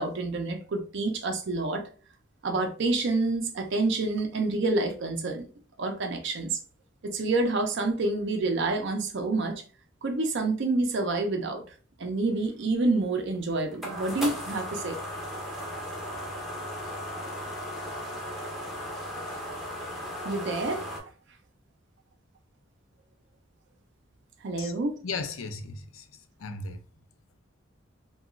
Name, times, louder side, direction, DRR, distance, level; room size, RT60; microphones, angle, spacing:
voice 1, 0.0-1.8 2.4-5.5 5.8-6.6 7.0-9.6 10.0-11.6 12.0-15.0 20.2-20.8 24.4-25.0, right 2 dB, 60° right, 0.5 m, -28 dB
sound 1, 13.0-21.0, equal, ahead, 0.6 m, -36 dB
voice 2, 25.0-26.0 26.4-26.8, left 4 dB, 85° left, 0.4 m, -35 dB
2.8 x 2.3 x 2.4 m
head